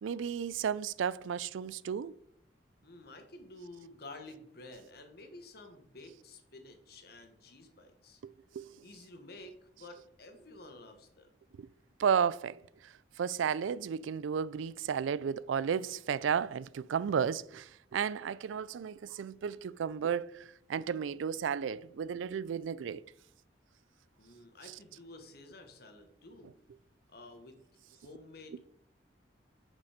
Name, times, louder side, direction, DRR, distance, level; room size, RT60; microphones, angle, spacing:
voice 1, 0.0-2.1 8.2-8.7 11.6-11.7 12.0-12.9 13.2-20.4 20.7-23.0, right 7 dB, 85° right, 0.4 m, -33 dB
voice 2, 2.8-8.2 8.8-11.3 24.2-26.5 27.1-27.6 27.9-28.6, left 2 dB, 55° left, 1.4 m, -51 dB
8.3 x 5.3 x 5.1 m
head